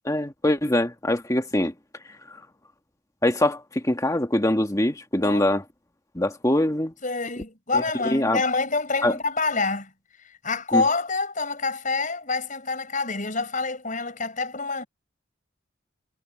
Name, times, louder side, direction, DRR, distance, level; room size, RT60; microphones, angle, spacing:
voice 1, 0.0-1.7 2.3-2.4 3.2-5.6 6.1-6.9 7.7-8.4 9.0-9.2 10.7-10.8, left 1 dB, 15° left, 1.5 m, -23 dB
voice 2, 7.0-9.9 10.4-14.9, left 3 dB, 40° left, 6.6 m, -27 dB
head